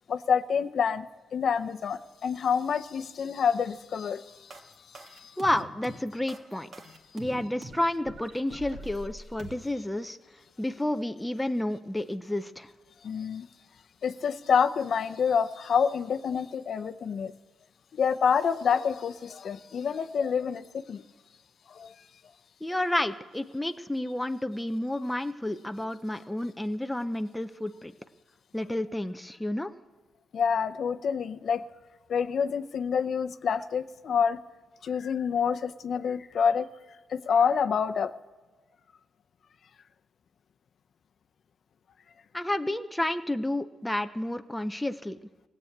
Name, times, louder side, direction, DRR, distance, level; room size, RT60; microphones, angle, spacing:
voice 1, 0.1-1.1 1.3-4.2 5.2-5.3 13.0-13.5 14.0-17.3 17.9-21.0 21.8-21.9 30.3-31.6 32.1-34.4 34.8-36.7 37.1-38.1, left 6 dB, 50° left, 9 dB, 0.6 m, -27 dB
sound 1, 4.5-9.5, right 2 dB, 40° right, 1.8 m, -43 dB
voice 2, 5.4-6.7 7.1-10.2 10.6-12.7 22.6-27.9 28.5-29.7 42.3-45.2, left 1 dB, 5° left, 8 dB, 0.5 m, -30 dB
17.5 x 7.9 x 8.7 m, 1.3 s
cardioid pair, 150°, 0 cm